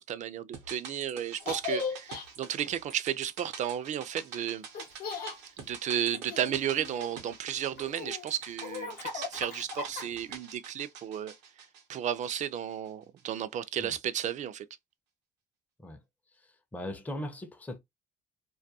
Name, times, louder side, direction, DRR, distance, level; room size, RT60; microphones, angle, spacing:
voice 1, 0.0-4.7 5.6-11.3 11.9-14.7, right 10 dB, 45° right, 0.4 m, -33 dB
sound 1, 0.5-12.9 13.2-13.3, right 6 dB, 90° right, 0.8 m, -47 dB
Laughter, 1.4-2.2 4.7-5.4 5.9-7.2 7.8-10.3, left 5 dB, 65° left, 0.7 m, -38 dB
voice 2, 16.4-17.8, left 1 dB, 10° left, 0.5 m, -39 dB
2.3 x 2.2 x 2.7 m
cardioid pair, 110°, 17 cm